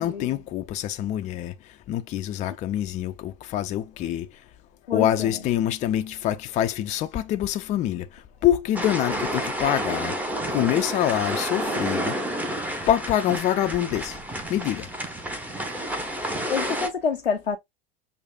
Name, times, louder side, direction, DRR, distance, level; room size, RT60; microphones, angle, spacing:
voice 1, 0.0-1.5 1.9-4.3 4.9-8.1 8.4-10.1 10.5-12.2 12.9-14.2 14.5-14.9, left 12 dB, 25° left, 0.4 m, -25 dB
sound 1, 8.8-16.9, right 1 dB, 5° right, 0.8 m, -30 dB
voice 2, 16.5-17.6, left 6 dB, 85° left, 0.5 m, -27 dB
6.2 x 2.6 x 2.4 m
figure-of-eight pair, 80°, 30 cm